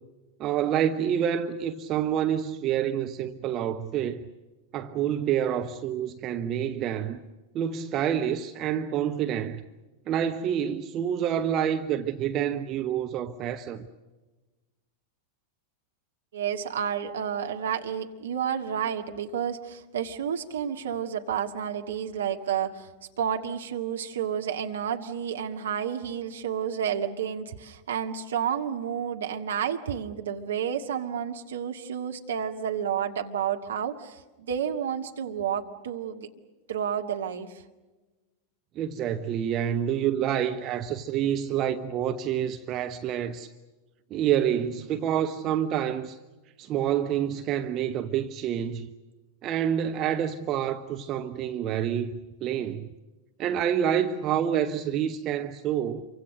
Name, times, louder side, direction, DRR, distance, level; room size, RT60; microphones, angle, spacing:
voice 1, 0.4-4.3 4.7-7.2 7.5-9.6 10.1-13.9 38.8-43.5 44.1-46.2 46.6-48.9 49.4-52.1 52.4-52.9 53.4-56.0, right 9 dB, 35° right, 1.0 m, -27 dB
voice 2, 16.3-22.9 23.2-36.3 36.7-37.6, right 8 dB, 65° right, 1.9 m, -30 dB
27.5 x 24.5 x 6.6 m
figure-of-eight pair, 90°, 0 cm